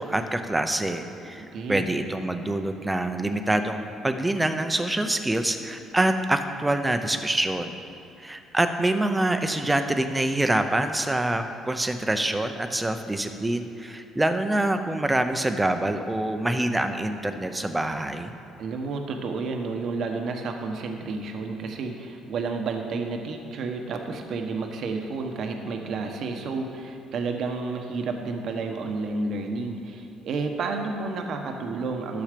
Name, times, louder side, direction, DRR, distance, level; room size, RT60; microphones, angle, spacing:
voice 1, 0.0-7.8 8.2-18.3, right 1 dB, 10° right, 7 dB, 0.8 m, -26 dB
voice 2, 1.4-1.9 18.6-32.2, right 4 dB, 60° right, 4 dB, 1.1 m, -31 dB
12.0 x 7.1 x 5.2 m, 2.7 s
cardioid pair, 95°, 0 cm